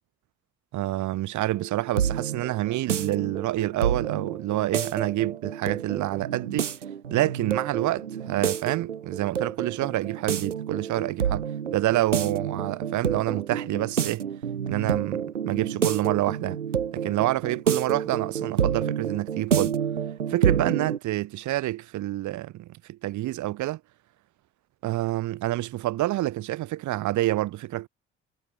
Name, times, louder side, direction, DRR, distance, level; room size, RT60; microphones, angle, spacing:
voice 1, 0.7-6.7 7.1-14.3 14.6-16.6 16.9-19.8 20.3-23.8 24.8-27.9, right 16 dB, 55° right, 1.9 m, -28 dB
sound 1, 1.5-21.0, right 8 dB, 80° right, 2.4 m, -29 dB
figure-of-eight pair, 50°, 36 cm